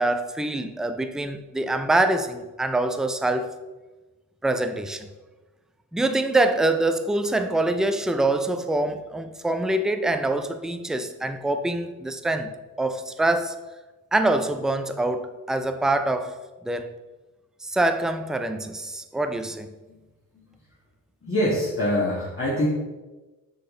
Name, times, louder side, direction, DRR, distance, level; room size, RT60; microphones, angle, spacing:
voice 1, 0.0-3.6 4.4-5.1 5.9-12.5 12.8-13.6 14.1-16.4 16.6-16.9 17.6-19.7, right 2 dB, ahead, 8 dB, 0.4 m, -25 dB
voice 2, 21.2-22.7, left 1 dB, 30° left, -6 dB, 1.7 m, -24 dB
6.7 x 3.9 x 3.8 m, 1.2 s
supercardioid pair, 60°, 41 cm